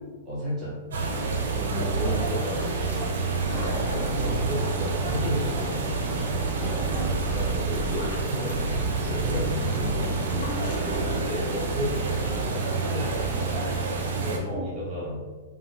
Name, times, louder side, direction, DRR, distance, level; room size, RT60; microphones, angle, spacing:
voice 1, 0.2-0.7 1.4-3.1 3.9-6.0 7.3-10.2 10.8-13.5 14.2-15.2, equal, 15° right, -7 dB, 0.8 m, -32 dB
sound 1, 0.9-14.4, right 4 dB, 90° right, 0.7 m, -28 dB
sound 2, 1.0-1.9 2.2-5.1 5.7-6.4 6.8-13.2 14.1-14.2, left 2 dB, 60° left, 1.1 m, -46 dB
voice 2, 1.7-2.2 3.5-4.3 6.6-7.1 9.8-11.2 14.4-14.7, left 1 dB, 30° left, -7 dB, 1.2 m, -36 dB
sound 3, 3.3-10.7, right 2 dB, 50° right, 0.6 m, -35 dB
3.2 x 2.4 x 2.8 m, 1.4 s
supercardioid pair, 170°, 0 cm